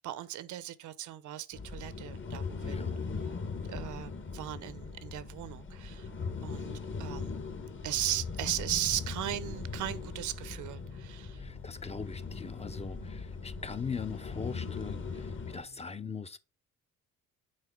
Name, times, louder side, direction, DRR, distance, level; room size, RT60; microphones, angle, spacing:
voice 1, 0.0-2.8 3.6-6.1 6.4-6.7 7.0-7.4 7.8-11.4, right 13 dB, 80° right, 0.7 m, -37 dB
sound 1, 1.5-15.6, left 4 dB, 40° left, 1.1 m, -39 dB
voice 2, 2.6-3.0 11.4-16.4, left 5 dB, 20° left, 0.5 m, -40 dB
sound 2, 5.4-15.8, left 6 dB, 60° left, 1.8 m, -56 dB
6.5 x 4.2 x 3.6 m
cardioid pair, 90°, 30 cm